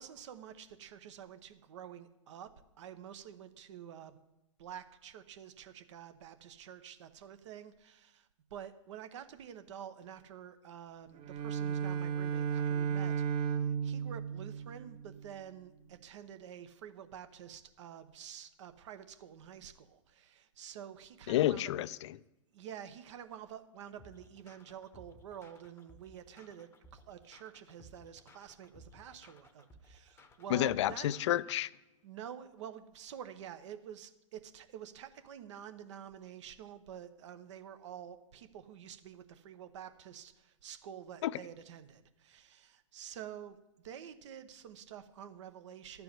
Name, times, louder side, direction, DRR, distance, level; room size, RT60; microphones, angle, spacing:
voice 1, 0.0-2.5 2.8-4.2 4.6-21.7 22.5-31.1 32.0-43.6 43.8-46.0, right 9 dB, 60° right, 0.9 m, -49 dB
Bowed string instrument, 11.1-15.3, right 7 dB, 30° right, 0.8 m, -34 dB
voice 2, 21.3-22.2 30.5-31.7 41.2-41.3, left 13 dB, 60° left, 0.4 m, -30 dB
sound 1, 24.0-31.6, left 1 dB, 15° left, 0.9 m, -59 dB
12.0 x 4.7 x 7.8 m
hypercardioid pair, 115°, 17 cm